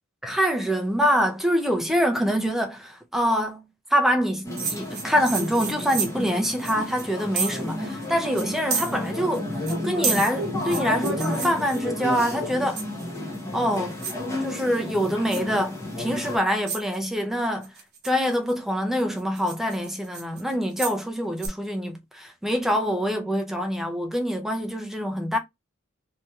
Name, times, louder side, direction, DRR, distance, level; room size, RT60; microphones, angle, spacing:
voice 1, 0.2-12.8 13.5-14.0 14.4-17.7 18.0-25.4, equal, ahead, 0.5 m, -25 dB
sound 1, 4.4-16.4, left 1 dB, 15° left, 0.9 m, -31 dB
sound 2, 4.6-7.7 8.0-8.1 8.4-9.4 9.7-12.2 12.8-13.2 13.6-14.2 14.6-15.0 15.3-15.6 16.2-16.3 16.7-17.0 17.6-18.5 19.0-21.0 21.4-21.5, right 6 dB, 50° right, 0.9 m, -31 dB
2.9 x 2.8 x 2.3 m
head